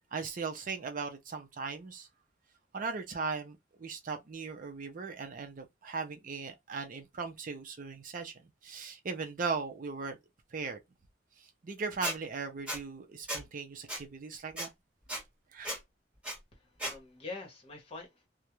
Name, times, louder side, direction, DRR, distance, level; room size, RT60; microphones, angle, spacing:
voice 1, 0.1-2.1 2.7-10.2 10.5-10.8 11.4-14.7 15.5-15.7, right 4 dB, 45° right, 0.5 m, -38 dB
Squeak, 12.0-12.2 12.7-12.8 13.3-13.4 13.9-14.0 14.6-14.7 15.1-15.2 15.6-15.8 16.2-16.4 16.8-16.9, equal, 5° right, 1.2 m, -35 dB
voice 2, 16.5-18.3, left 3 dB, 35° left, 1.0 m, -45 dB
2.4 x 2.1 x 2.9 m
head